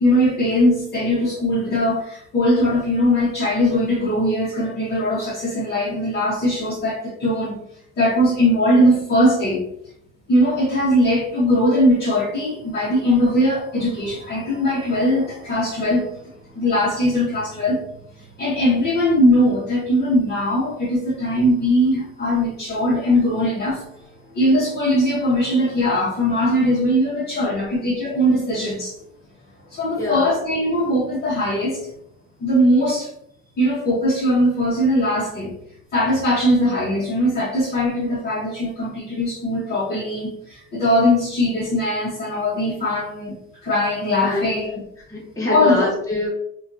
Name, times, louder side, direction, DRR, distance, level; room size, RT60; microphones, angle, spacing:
voice 1, 0.0-7.6 8.0-9.6 10.3-16.2 16.5-17.8 18.2-23.8 24.3-28.9 29.7-31.9 32.4-33.1 33.6-35.5 35.9-43.3 43.6-44.7 45.4-45.9, equal, 30° left, -7 dB, 0.8 m, -20 dB
voice 2, 30.0-30.3 44.2-44.5 45.1-46.3, left 1 dB, 10° left, -5 dB, 1.1 m, -25 dB
2.6 x 2.2 x 2.6 m, 0.71 s
cardioid pair, 120°, 31 cm